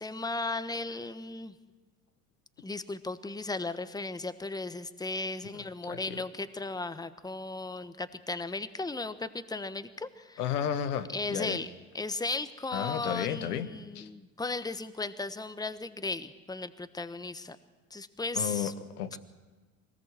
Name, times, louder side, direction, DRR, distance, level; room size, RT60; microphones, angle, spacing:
voice 1, 0.0-1.5 2.6-10.4 11.1-17.6 17.9-18.7 19.1-19.2, left 3 dB, 10° left, 12 dB, 1.3 m, -36 dB
voice 2, 5.5-6.2 10.4-11.6 12.7-13.7 13.9-14.1 18.3-19.2, left 9 dB, 80° left, 10 dB, 1.5 m, -33 dB
24.5 x 19.0 x 7.7 m, 1.3 s
hypercardioid pair, 70°, 45 cm